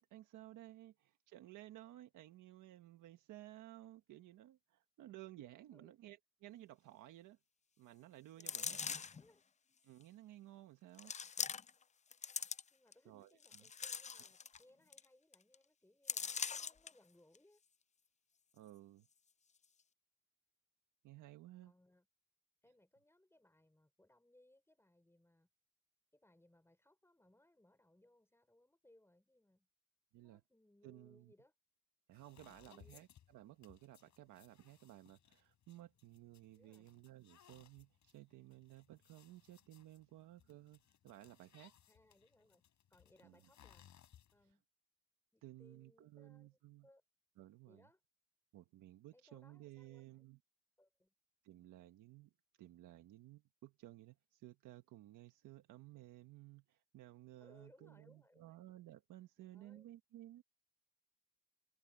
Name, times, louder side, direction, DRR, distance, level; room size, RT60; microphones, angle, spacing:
voice 1, 0.0-7.4 7.8-8.8 9.8-11.1 13.0-13.7 18.5-19.1 21.0-21.7 30.1-30.4 30.8-31.3 32.1-41.7 43.2-43.4 45.4-46.9 47.4-47.9 48.5-50.4 51.4-52.3 52.6-60.4, right 15 dB, 85° right, 1.5 m, -57 dB
voice 2, 8.3-9.4 12.7-17.6 21.6-22.1 22.6-25.5 26.1-29.7 30.2-31.5 32.6-33.0 36.6-36.9 41.9-42.6 42.9-43.8 44.3-44.6 45.3-47.0 47.7-48.0 49.1-50.3 50.8-51.1 57.4-58.6 59.4-59.9, left 1 dB, 10° left, 5.5 m, -69 dB
sound 1, 8.4-9.2 10.0-10.1 11.0-11.8 12.1-12.9 13.4-14.6 14.9-15.0 15.3-15.5 16.1-16.9 17.3-17.4, left 6 dB, 25° left, 0.5 m, -42 dB
sound 2, 32.1-44.5, left 10 dB, 70° left, 7.8 m, -67 dB
cardioid pair, 90°, 30 cm